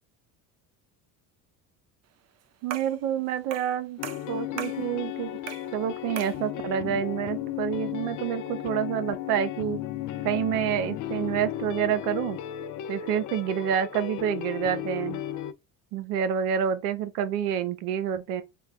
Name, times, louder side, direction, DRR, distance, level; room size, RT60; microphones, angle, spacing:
voice 1, 2.6-4.0 4.3-5.3 5.7-9.8 10.2-12.4 12.9-15.2 15.9-18.4, right 9 dB, 80° right, 0.8 m, -28 dB
sound 1, 2.7-3.0 3.5-3.8 4.0-4.8 5.5-5.7 6.2-6.4, right 9 dB, 40° right, 0.5 m, -37 dB
sound 2, 4.0-15.5, left 12 dB, 45° left, 0.5 m, -34 dB
3.3 x 2.2 x 3.1 m
hypercardioid pair, 70°, 44 cm